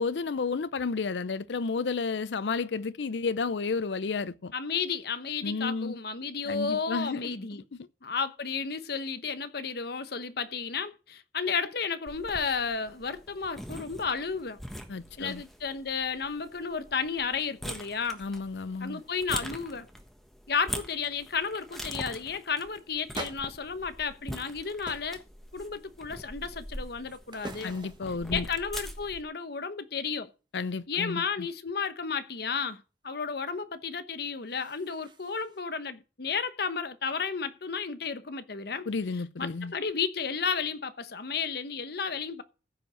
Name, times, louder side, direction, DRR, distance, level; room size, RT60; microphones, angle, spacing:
voice 1, 0.0-4.5 5.4-5.9 6.5-7.3 14.9-15.4 18.2-19.0 27.6-28.4 30.5-31.2 38.9-39.7, left 4 dB, 85° left, 0.5 m, -31 dB
voice 2, 4.5-7.6 8.0-14.6 15.2-18.2 18.8-19.9 20.5-25.2 25.5-27.8 28.3-30.3 30.9-38.9 39.1-42.4, left 5 dB, 60° left, 1.0 m, -33 dB
sound 1, 12.1-29.2, equal, ahead, 1.3 m, -43 dB
sound 2, 17.4-17.5 17.8-18.6 18.9-19.3 19.6-20.1 20.7-20.8 21.1-21.3 21.8-22.0 23.1-24.5 24.8-25.2 25.5-26.0 26.6-28.2 34.2-35.6, right 2 dB, 25° right, 1.2 m, -46 dB
15.0 x 5.2 x 6.3 m
head